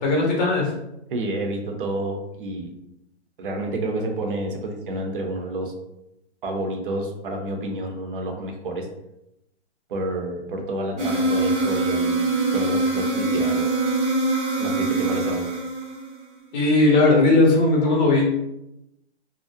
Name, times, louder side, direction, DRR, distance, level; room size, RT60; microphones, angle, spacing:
voice 1, 0.0-0.7 16.5-18.4, left 2 dB, 40° left, -2 dB, 0.6 m, -18 dB
voice 2, 1.1-2.7 3.4-5.7 6.4-8.9 9.9-13.9 14.6-15.5, right 1 dB, 50° right, 2 dB, 0.5 m, -29 dB
sound 1, 11.0-16.3, right 2 dB, 90° right, 1.1 m, -23 dB
2.4 x 2.0 x 2.5 m, 0.86 s
hypercardioid pair, 155°, 35 cm